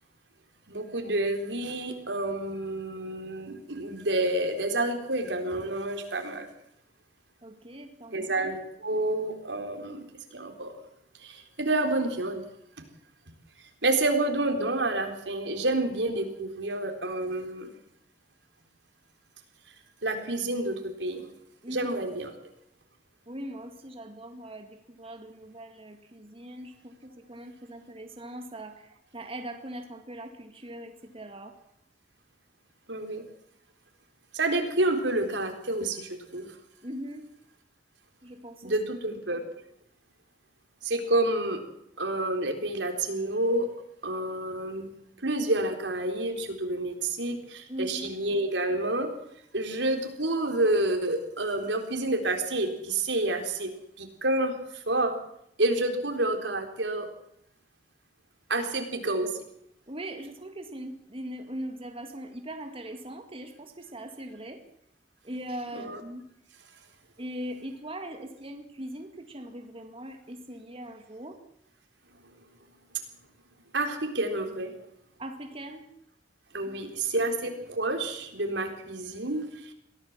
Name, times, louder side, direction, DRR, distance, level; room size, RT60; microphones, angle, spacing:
voice 1, 0.7-6.5 8.1-10.0 10.3-10.7 11.2-12.4 13.8-17.7 20.0-21.2 21.7-22.3 32.9-33.2 34.3-36.5 38.6-39.4 40.8-41.6 42.0-43.7 44.0-44.9 45.2-49.1 49.5-53.7 54.0-55.2 55.6-57.1 58.5-59.4 65.7-66.0 73.7-74.7 76.5-79.7, right 2 dB, 85° right, 5 dB, 4.0 m, -29 dB
voice 2, 7.4-8.6 21.6-21.9 23.3-31.5 36.8-37.3 38.2-38.8 47.7-48.1 59.9-64.6 65.2-66.3 67.2-71.4 75.2-75.8 76.6-77.3, right 1 dB, 30° right, 5 dB, 2.1 m, -40 dB
22.5 x 16.5 x 7.4 m, 0.74 s
head